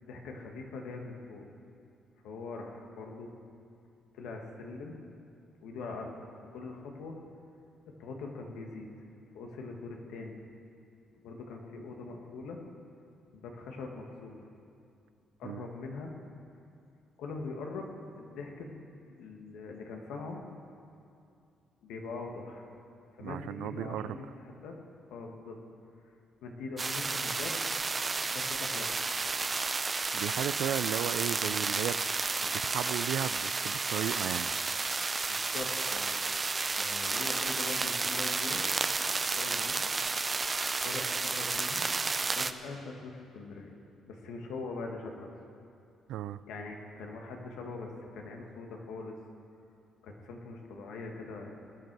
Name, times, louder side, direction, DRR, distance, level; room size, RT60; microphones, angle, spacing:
voice 1, 0.0-1.4 2.2-3.3 4.1-5.0 5.6-6.2 6.5-7.2 8.0-8.9 9.3-10.4 11.2-12.6 13.3-14.4 15.4-16.1 17.2-18.7 19.1-20.4 21.8-22.7 23.2-24.8 25.1-25.6 26.4-27.6 28.2-28.9 35.3-36.2 36.8-38.6 39.1-39.8 40.8-41.9 42.2-43.7 44.1-45.3 46.5-49.2 50.0-51.5, left 3 dB, 90° left, 2 dB, 1.6 m, -42 dB
voice 2, 23.2-24.2 30.1-34.5 46.1-46.4, right 11 dB, 85° right, 16 dB, 0.3 m, -35 dB
sound 1, 26.8-42.5, right 3 dB, 30° right, 0.5 m, -32 dB
20.5 x 9.2 x 4.7 m, 2.5 s
cardioid pair, 90°, 0 cm